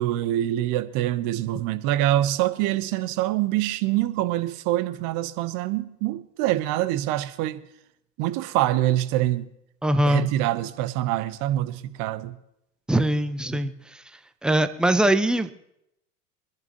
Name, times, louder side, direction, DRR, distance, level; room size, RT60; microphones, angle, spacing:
voice 1, 0.0-7.6 8.2-9.5 10.0-12.3 13.5-13.6, right 14 dB, 45° right, 1.0 m, -25 dB
voice 2, 9.8-10.3 12.9-13.7 14.4-15.5, right 1 dB, ahead, 0.7 m, -21 dB
23.5 x 10.5 x 3.0 m
figure-of-eight pair, 80°, 44 cm